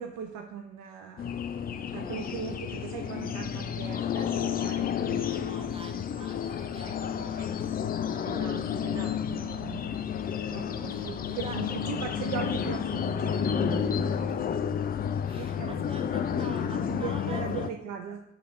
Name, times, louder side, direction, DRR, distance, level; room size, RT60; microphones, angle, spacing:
voice 1, 0.0-1.3 1.9-5.3 6.2-6.3 6.6-6.7 7.4-7.5 8.2-10.1 10.5-14.5 15.4-15.8 16.4-18.2, right 8 dB, 50° right, 4 dB, 0.6 m, -39 dB
sound 1, 1.2-17.7, left 8 dB, 25° left, 0.3 m, -31 dB
voice 2, 5.1-8.6 9.9-11.8 12.9-13.2 14.3-14.6 15.2-17.7, right 2 dB, 15° right, 2 dB, 1.3 m, -48 dB
5.5 x 3.4 x 5.5 m, 0.82 s
figure-of-eight pair, 40°, 39 cm